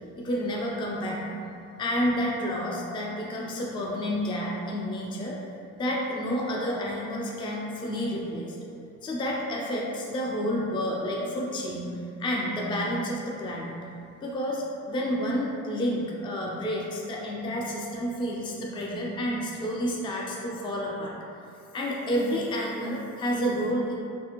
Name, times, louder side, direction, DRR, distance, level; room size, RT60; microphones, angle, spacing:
voice 1, 0.2-1.2 1.8-5.4 5.7-8.6 9.0-13.7 14.2-21.1 21.7-24.0, equal, 15° left, -3 dB, 0.4 m, -30 dB
3.3 x 2.5 x 2.9 m, 2.6 s
cardioid pair, 90°, 30 cm